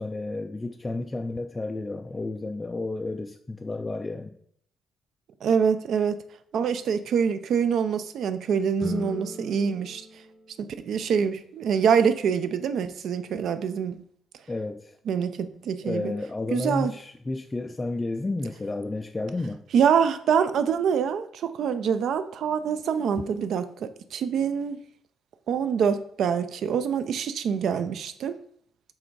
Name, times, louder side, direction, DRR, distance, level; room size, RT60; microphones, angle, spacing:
voice 1, 0.0-4.4 14.5-15.0 15.8-19.6, left 2 dB, 15° left, 0.3 m, -31 dB
voice 2, 5.4-6.2 6.5-10.0 10.6-14.0 15.1-16.1 16.5-16.9 19.7-24.8 25.5-28.4, right 7 dB, 60° right, 0.5 m, -25 dB
sound 1, 8.8-11.2, left 2 dB, 5° right, 0.8 m, -38 dB
7.5 x 3.5 x 4.6 m
cardioid pair, 165°, 0 cm